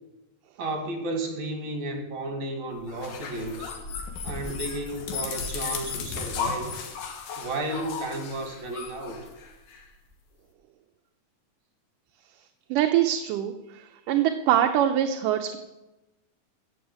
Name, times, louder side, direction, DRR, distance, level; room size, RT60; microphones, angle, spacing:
voice 1, 0.6-3.7 4.2-6.7 7.4-9.2, right 2 dB, 60° right, 4 dB, 3.4 m, -33 dB
sound 1, 2.9-9.8, left 6 dB, 75° left, 3.2 m, -35 dB
voice 2, 12.7-15.6, right 11 dB, 75° right, 5 dB, 2.2 m, -24 dB
15.0 x 8.1 x 8.1 m, 1.0 s
omnidirectional pair, 3.9 m